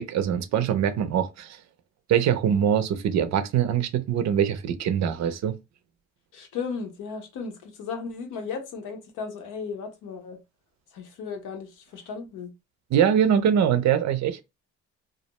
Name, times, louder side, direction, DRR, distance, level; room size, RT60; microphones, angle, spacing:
voice 1, 0.0-1.6 2.1-5.6 12.9-14.4, right 9 dB, 65° right, 0.5 m, -23 dB
voice 2, 6.3-10.4 10.9-12.5, left 5 dB, 85° left, 0.8 m, -35 dB
2.4 x 2.0 x 2.9 m
cardioid pair, 90°, 30 cm